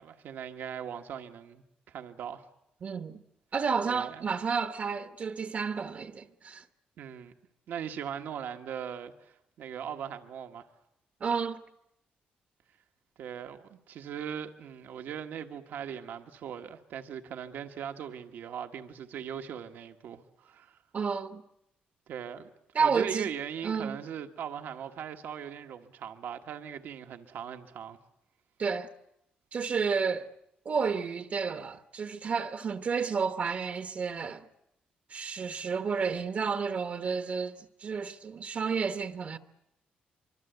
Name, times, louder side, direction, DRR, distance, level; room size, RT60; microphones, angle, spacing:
voice 1, 0.0-2.5 3.9-4.2 7.0-7.3 7.7-10.7 13.2-20.8 22.1-22.5 22.8-28.0, right 8 dB, 75° right, 1.4 m, -40 dB
voice 2, 2.8-3.2 3.5-6.6 11.2-11.6 20.9-21.4 22.7-23.3 23.6-24.0 28.6-28.9 29.5-30.3 30.6-34.4 35.1-39.4, right 5 dB, 45° right, 1.1 m, -31 dB
25.0 x 24.0 x 8.1 m
cardioid pair, 115°, 3 cm